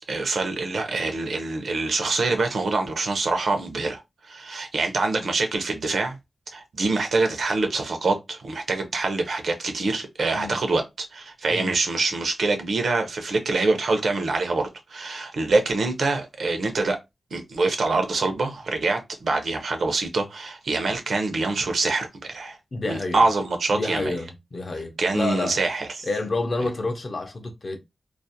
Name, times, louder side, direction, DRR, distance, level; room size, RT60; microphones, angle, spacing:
voice 1, 0.1-4.0 4.3-6.2 6.5-17.0 17.3-22.6 22.9-24.1 25.0-26.1, right 3 dB, 75° right, 0.6 m, -25 dB
voice 2, 22.7-23.2 23.7-25.6 26.0-27.8, left 3 dB, 40° left, 0.5 m, -29 dB
2.4 x 2.0 x 2.7 m
wide cardioid pair, 155°, 0 cm